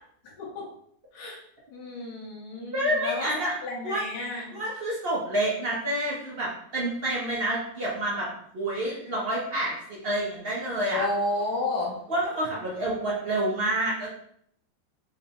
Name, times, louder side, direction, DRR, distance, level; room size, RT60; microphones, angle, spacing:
voice 1, 0.4-0.7 1.1-1.4 1.7-4.5 10.9-12.0, left 2 dB, 65° left, -2 dB, 1.4 m, -32 dB
voice 2, 2.7-3.5 3.8-4.0 4.5-8.3 8.5-11.1 12.1-14.1, right 1 dB, 55° right, -4 dB, 0.6 m, -28 dB
3.8 x 3.2 x 2.8 m, 0.66 s
omnidirectional pair, 2.0 m